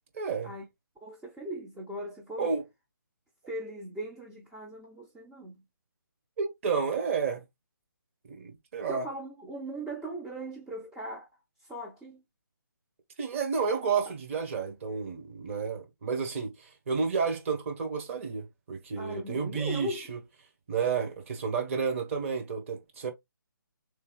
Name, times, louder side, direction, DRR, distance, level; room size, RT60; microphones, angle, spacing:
voice 1, 0.1-0.5 2.4-2.6 6.4-7.4 8.3-9.1 13.2-16.5 16.9-20.2 20.7-23.1, right 5 dB, 35° right, 1.4 m, -31 dB
voice 2, 1.0-2.5 3.5-5.5 8.9-11.3 11.7-12.2 19.0-20.1, right 1 dB, 5° right, 0.3 m, -39 dB
3.6 x 3.3 x 3.1 m
figure-of-eight pair, 155°, 12 cm